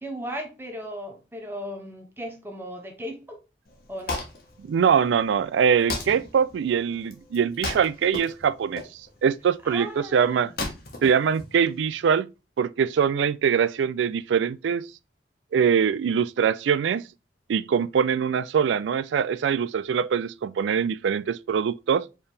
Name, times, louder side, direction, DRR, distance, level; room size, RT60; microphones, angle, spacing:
voice 1, 0.0-3.4 3.9-4.3 9.6-10.5, equal, 10° right, 0.8 m, -36 dB
Wood, 3.7-12.0, left 2 dB, 55° left, 1.1 m, -36 dB
voice 2, 4.7-10.5 11.0-12.3 12.6-14.9 15.5-17.0 17.5-22.1, right 7 dB, 85° right, 0.3 m, -23 dB
4.6 x 3.4 x 3.2 m
head